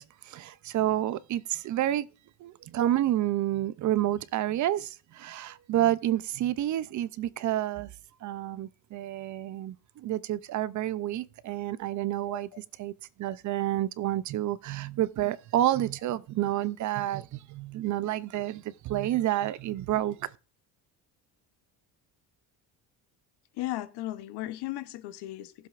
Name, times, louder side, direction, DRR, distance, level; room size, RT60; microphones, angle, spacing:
voice 1, 0.0-2.1 2.4-7.9 8.2-12.5 12.8-12.9 13.2-20.3, right 13 dB, 45° right, 0.5 m, -29 dB
voice 2, 12.3-12.6 23.5-25.7, left 15 dB, 70° left, 0.9 m, -36 dB
18.0 x 7.6 x 2.5 m
cardioid pair, 140°, 41 cm